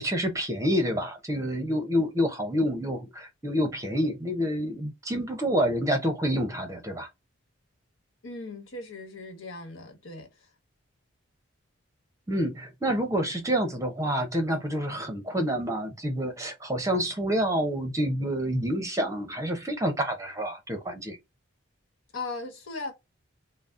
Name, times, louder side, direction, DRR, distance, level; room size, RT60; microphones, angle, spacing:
voice 1, 0.0-7.1 12.3-21.2, equal, 15° right, 0.7 m, -28 dB
voice 2, 8.2-10.5 22.1-22.9, left 3 dB, 70° left, 1.2 m, -38 dB
3.9 x 2.0 x 3.6 m
head